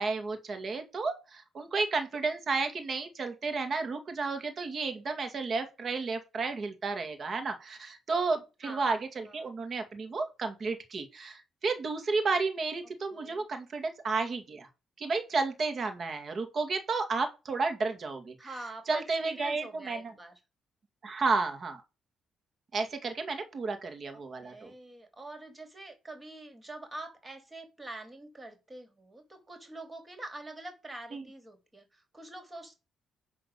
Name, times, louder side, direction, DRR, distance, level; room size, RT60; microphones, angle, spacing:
voice 1, 0.0-14.7 15.0-18.3 18.9-20.0 21.0-21.8 22.7-24.7 31.1-31.2, right 4 dB, 45° right, 2.2 m, -32 dB
voice 2, 8.6-9.5 13.1-13.5 18.4-20.4 24.1-32.7, right 2 dB, 20° right, 3.3 m, -45 dB
11.0 x 3.8 x 6.8 m
cardioid pair, 90°, 0 cm